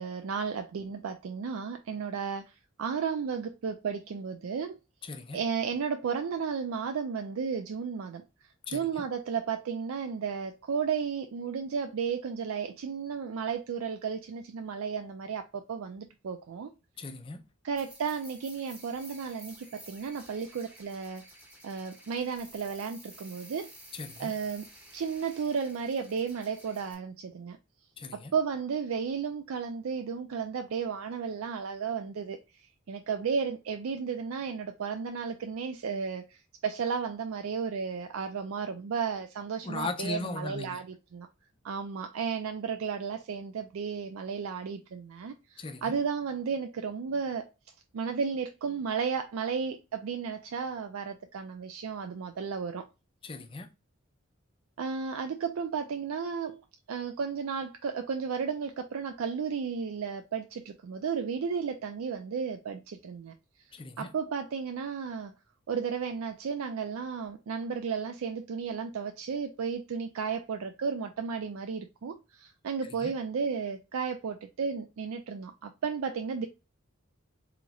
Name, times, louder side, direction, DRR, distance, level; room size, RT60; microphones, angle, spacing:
voice 1, 0.0-4.8 5.3-8.2 8.7-16.7 17.6-21.2 21.6-23.7 24.2-24.7 24.9-27.6 28.1-32.4 32.9-40.9 41.1-41.3 41.6-47.5 47.9-52.8 54.8-56.6 56.9-63.3 64.0-65.3 65.7-76.5, right 6 dB, 85° right, 0.4 m, -33 dB
voice 2, 5.0-5.4 8.7-9.0 17.0-17.4 23.9-24.3 28.0-28.3 39.6-40.8 45.6-45.9 53.2-53.7 63.7-64.1 73.0-73.1, left 3 dB, 25° left, 0.4 m, -38 dB
sound 1, 17.7-26.9, right 1 dB, 5° right, 0.9 m, -52 dB
4.0 x 2.9 x 2.3 m
head